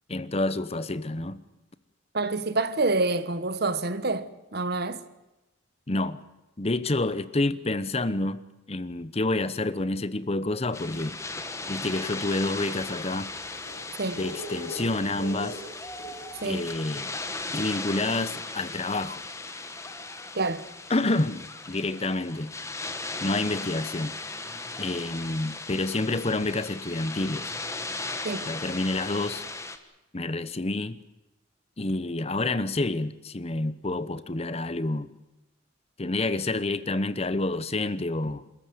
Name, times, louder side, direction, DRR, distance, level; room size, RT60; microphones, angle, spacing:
voice 1, 0.1-1.4 5.9-6.2 6.6-8.4 8.7-11.2 11.7-13.3 14.1-15.6 16.4-17.1 17.5-19.2 20.9-22.5 23.2-24.2 24.8-27.5 28.5-29.4 30.1-31.0 31.8-35.1 36.0-38.4, left 2 dB, 35° left, 0.9 m, -28 dB
voice 2, 2.1-5.0 14.0-14.2 16.4-16.6 20.4-20.7 28.2-28.5, right 3 dB, 55° right, 1.3 m, -27 dB
sound 1, 10.7-29.8, left 3 dB, 15° left, 1.6 m, -37 dB
sound 2, 12.1-16.7, right 1 dB, 55° left, 4.3 m, -42 dB
28.0 x 14.0 x 9.4 m
head